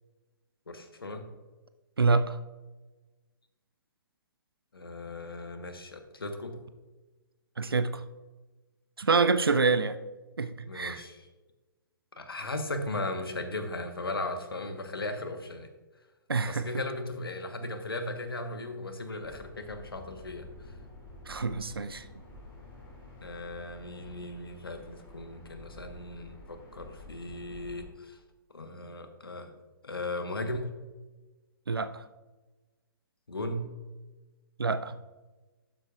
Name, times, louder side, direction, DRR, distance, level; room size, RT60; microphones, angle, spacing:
voice 1, 0.7-1.3 4.7-6.6 10.7-11.3 12.2-15.7 16.5-20.5 23.2-28.2 28.5-29.5 29.8-30.7 33.3-33.7, left 2 dB, 80° left, 6 dB, 1.3 m, -37 dB
voice 2, 2.0-2.4 7.6-8.0 9.0-10.0 10.4-11.0 16.3-16.6 21.3-22.0 31.7-32.0 34.6-35.0, right 4 dB, 85° right, 12 dB, 0.5 m, -26 dB
sound 1, 19.2-27.8, left 2 dB, 20° left, 2.7 m, -50 dB
12.0 x 7.5 x 2.5 m, 1.2 s
figure-of-eight pair, 125°, 12 cm